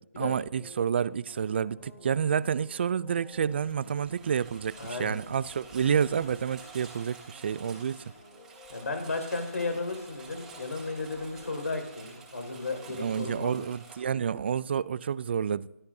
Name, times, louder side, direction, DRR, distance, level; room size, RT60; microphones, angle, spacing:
voice 1, 0.2-8.0 13.0-15.7, right 7 dB, 45° right, 0.4 m, -29 dB
sound 1, 0.6-11.9, left 1 dB, 20° left, 6.9 m, -54 dB
Engine, 3.3-14.0, right 4 dB, 5° right, 3.3 m, -50 dB
voice 2, 4.8-5.2 8.7-13.7, left 3 dB, 85° left, 5.1 m, -34 dB
26.5 x 13.5 x 2.7 m
hypercardioid pair, 160°, 8 cm